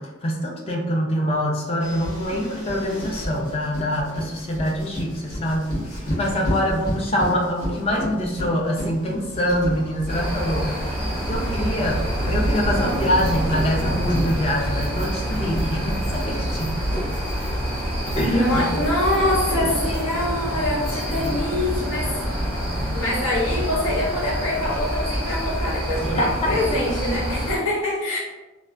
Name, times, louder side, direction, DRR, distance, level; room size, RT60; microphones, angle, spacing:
voice 1, 0.0-16.8 18.2-18.9 26.0-26.5, equal, 30° left, 0 dB, 0.4 m, -25 dB
sound 1, 1.8-21.6, equal, 55° left, 1.2 m, -33 dB
sound 2, 10.1-27.6, equal, 5° left, 0.8 m, -27 dB
sound 3, 11.3-18.9, right 2 dB, 85° right, 0.4 m, -32 dB
voice 2, 18.3-22.2 22.9-28.2, left 1 dB, 80° left, -4 dB, 0.9 m, -24 dB
3.2 x 2.3 x 2.5 m, 1.2 s
head